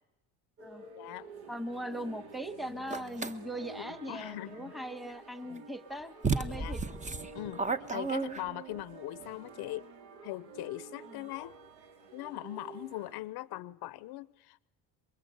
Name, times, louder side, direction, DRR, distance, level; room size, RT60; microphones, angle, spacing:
sound 1, 0.6-13.2, right 3 dB, 65° right, 4.3 m, -50 dB
voice 1, 1.0-1.3 4.1-4.7 5.5-5.6 6.5-6.8 7.3-9.9 10.2-11.6 12.1-14.6, left 17 dB, 70° left, 18 dB, 0.9 m, -41 dB
voice 2, 1.5-6.8 11.1-11.3, equal, ahead, 10 dB, 1.5 m, -40 dB
sound 2, 2.9-3.3 5.6-5.7 6.2-8.8, right 4 dB, 20° right, 1.1 m, -32 dB
29.0 x 23.5 x 8.0 m, 0.94 s
cardioid pair, 130°, 40 cm